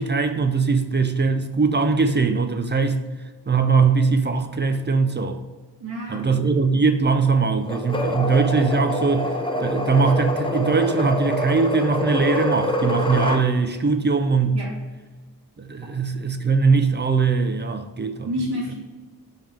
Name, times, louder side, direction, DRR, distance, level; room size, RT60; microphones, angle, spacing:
voice 1, 0.0-3.0 3.5-5.4 6.1-9.3 9.6-14.6 15.6-18.3, right 4 dB, 30° right, 0.5 m, -21 dB
voice 2, 5.8-6.6 14.5-14.7 18.2-18.8, equal, 80° right, 1.5 m, -29 dB
sound 1, 7.7-13.4, left 1 dB, 15° left, 0.8 m, -25 dB
5.4 x 3.6 x 5.8 m
cardioid pair, 85°, 38 cm